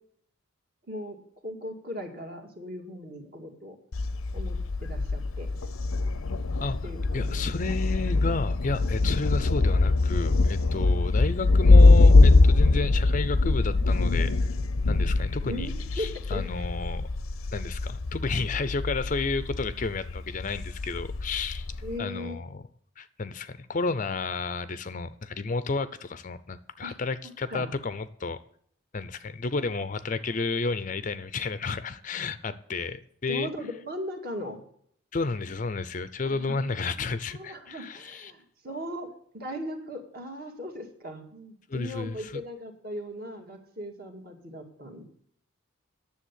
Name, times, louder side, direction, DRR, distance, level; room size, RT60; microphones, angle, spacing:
voice 1, 0.9-1.2 1.4-3.8 4.3-5.5 6.8-7.7 10.8-10.9 15.4-15.7 16.0-16.7 21.8-22.4 26.8-26.9 27.5-27.7 33.3-34.6 36.3-36.7 37.3-39.1 39.3-45.1, equal, 45° right, 4 dB, 2.1 m, -38 dB
Thunder, 3.9-22.0, left 3 dB, 90° left, 0.7 m, -23 dB
voice 2, 7.1-14.5 14.9-15.7 16.0-17.1 17.5-22.6 23.0-28.4 28.9-33.5 35.1-38.3 41.7-42.4, left 3 dB, 40° left, 14 dB, 0.5 m, -32 dB
10.0 x 7.1 x 8.1 m, 0.64 s
head